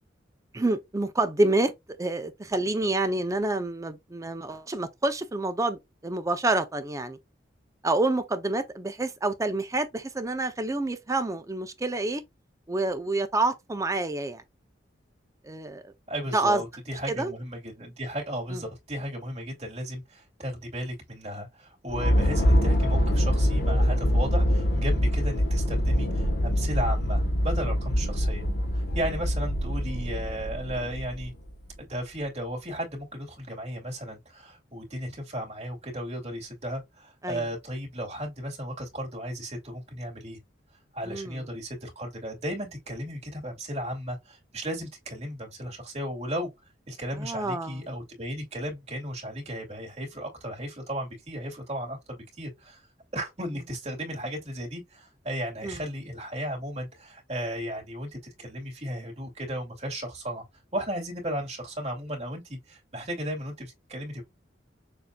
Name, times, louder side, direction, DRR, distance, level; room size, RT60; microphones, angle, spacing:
voice 1, 0.5-1.7 2.0-7.2 7.8-12.2 12.7-14.4 15.4-15.9 16.3-16.6 17.1-17.3 18.5-18.6 37.2-37.4 41.0-41.4 47.2-47.8 55.6-55.8, right 2 dB, 20° right, 0.5 m, -28 dB
voice 2, 16.1-28.5 28.7-31.3 31.8-40.4 40.9-46.5 46.9-52.9 53.1-60.4 60.7-64.2, equal, 35° right, 2.3 m, -35 dB
sound 1, 21.9-31.5, equal, 60° left, 1.2 m, -24 dB
6.6 x 2.6 x 2.3 m
head